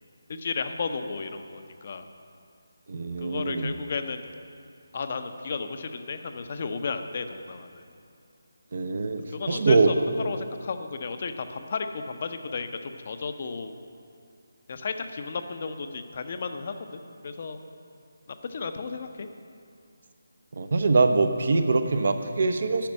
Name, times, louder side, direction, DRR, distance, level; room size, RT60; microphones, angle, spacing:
voice 1, 0.3-2.0 3.2-4.2 4.9-7.8 9.3-13.7 14.7-17.6 18.4-19.3, left 4 dB, 40° left, 8 dB, 0.7 m, -33 dB
voice 2, 2.9-3.7 8.7-9.9 20.6-22.9, right 3 dB, 50° right, 8 dB, 0.8 m, -23 dB
10.5 x 6.1 x 8.6 m, 2.4 s
figure-of-eight pair, 155°, 0 cm